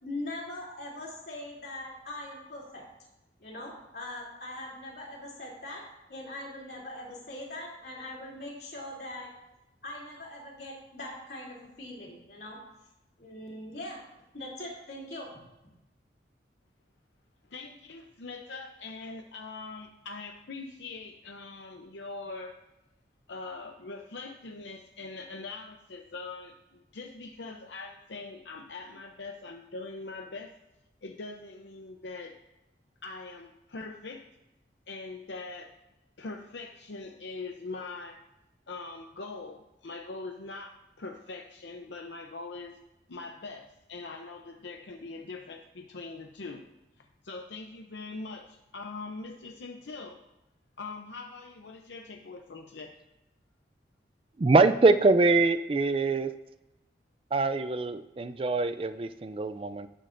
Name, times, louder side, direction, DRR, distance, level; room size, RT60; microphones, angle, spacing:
voice 1, 0.0-2.8 3.4-9.3 9.8-12.6 13.2-14.0 14.3-15.4, left 1 dB, 60° left, -3 dB, 3.0 m, -41 dB
voice 2, 17.5-22.6 23.3-30.5 31.0-32.3 33.0-34.2 34.9-35.7 36.2-38.2 38.7-42.8 43.1-46.6 47.0-50.2 50.8-52.9, left 3 dB, 80° left, 4 dB, 0.7 m, -42 dB
voice 3, 54.4-56.3 57.3-59.9, right 3 dB, 30° right, 11 dB, 0.4 m, -24 dB
17.0 x 7.5 x 2.6 m, 0.95 s
head